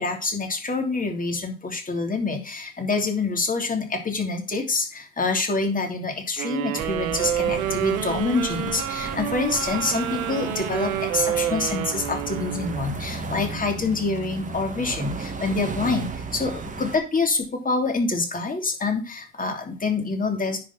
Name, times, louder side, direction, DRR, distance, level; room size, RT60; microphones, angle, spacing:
voice 1, 0.0-20.6, left 3 dB, 20° left, 5 dB, 2.9 m, -26 dB
sound 1, 6.4-12.9, right 11 dB, 80° right, 1.6 m, -28 dB
sound 2, 6.8-17.0, right 3 dB, 20° right, 1.8 m, -35 dB
10.5 x 5.0 x 6.1 m, 0.34 s
hypercardioid pair, 90°, 42 cm